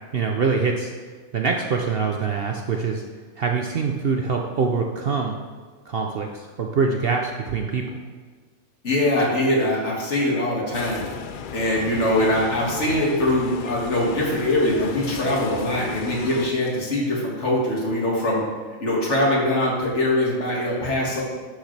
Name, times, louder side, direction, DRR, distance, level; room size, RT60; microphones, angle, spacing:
voice 1, 0.1-0.9 1.3-3.0 3.4-5.4 5.9-8.0, right 5 dB, 55° right, 2 dB, 0.7 m, -24 dB
voice 2, 8.8-11.0 11.5-18.4 18.8-21.2, left 1 dB, 55° left, -4 dB, 2.3 m, -22 dB
sound 1, 10.7-16.5, left 6 dB, 75° left, 0.4 m, -34 dB
11.5 x 6.6 x 3.3 m, 1.5 s
omnidirectional pair, 1.4 m